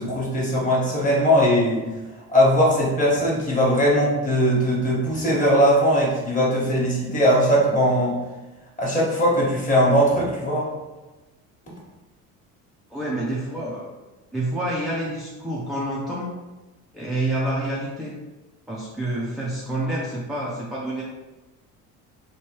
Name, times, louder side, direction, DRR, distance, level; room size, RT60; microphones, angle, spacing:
voice 1, 0.0-1.8 2.3-8.1 8.8-10.7, equal, 20° left, -5 dB, 1.2 m, -20 dB
voice 2, 12.9-13.8 14.3-16.4 16.9-18.2 18.7-21.0, right 1 dB, ahead, -6 dB, 0.4 m, -28 dB
3.0 x 2.2 x 2.9 m, 1.1 s
supercardioid pair, 90°, 38 cm